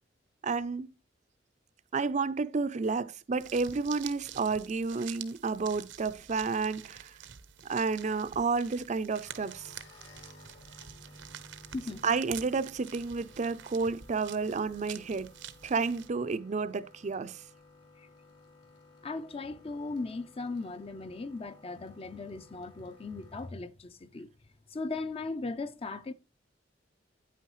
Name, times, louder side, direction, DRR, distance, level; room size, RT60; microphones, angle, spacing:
voice 1, 0.4-0.9 1.9-7.2 7.6-9.7 12.0-15.3 15.6-17.4, right 4 dB, 40° right, 0.5 m, -31 dB
sound 1, 3.3-16.1, right 10 dB, 90° right, 0.9 m, -48 dB
sound 2, 9.2-23.5, left 2 dB, 70° left, 3.8 m, -57 dB
voice 2, 11.7-12.0 18.0-18.1 19.0-24.3 24.7-26.1, left 3 dB, 30° left, 0.5 m, -38 dB
9.2 x 9.1 x 3.1 m
head